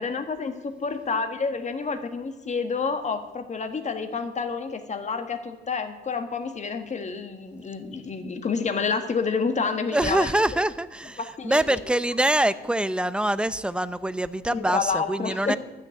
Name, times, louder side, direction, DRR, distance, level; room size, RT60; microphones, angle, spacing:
voice 1, 0.0-10.3 11.2-11.8 14.5-15.6, left 5 dB, 35° left, 7 dB, 1.5 m, -29 dB
voice 2, 9.9-15.6, right 1 dB, 5° right, 14 dB, 0.6 m, -24 dB
12.5 x 6.6 x 9.6 m, 1.2 s
cardioid pair, 90°, 20 cm